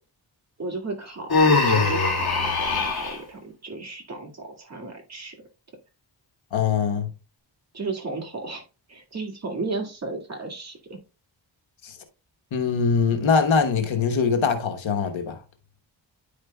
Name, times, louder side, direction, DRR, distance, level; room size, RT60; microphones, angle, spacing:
voice 1, 0.6-5.4 7.7-11.0, right 3 dB, 35° right, 2.0 m, -34 dB
Human voice, 1.3-3.2, left 4 dB, 55° left, 2.1 m, -21 dB
voice 2, 6.5-7.1 11.8-12.0 12.5-15.4, left 5 dB, 90° left, 1.1 m, -22 dB
10.0 x 5.0 x 2.2 m
wide cardioid pair, 80°, 45 cm